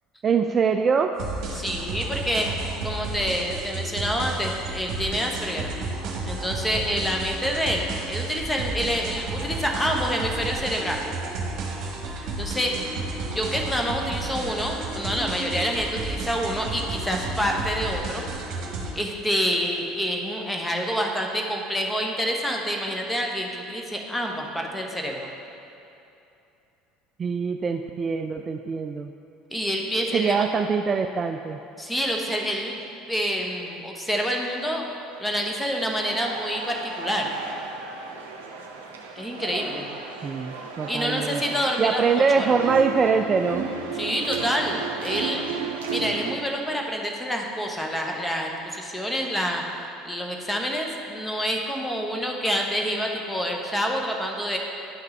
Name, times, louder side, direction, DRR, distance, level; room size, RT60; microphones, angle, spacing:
voice 1, 0.2-1.2 27.2-29.1 30.1-31.6 40.2-41.4 41.8-43.7, right 5 dB, 35° right, 6 dB, 0.3 m, -23 dB
sound 1, 1.2-18.9, right 3 dB, 50° right, 1.3 m, -32 dB
voice 2, 1.5-2.5 2.8-5.7 6.3-11.1 12.4-12.7 13.3-18.3 18.9-25.2 29.5-30.5 31.8-32.8 33.1-34.9 35.2-37.3 39.2-39.9 40.9-42.5 43.9-45.5 45.9-54.6, equal, 10° left, 1 dB, 1.1 m, -27 dB
sound 2, 35.2-46.3, right 5 dB, 75° right, 0.7 m, -34 dB
10.0 x 5.8 x 3.3 m, 2.8 s
figure-of-eight pair, 65°, 0 cm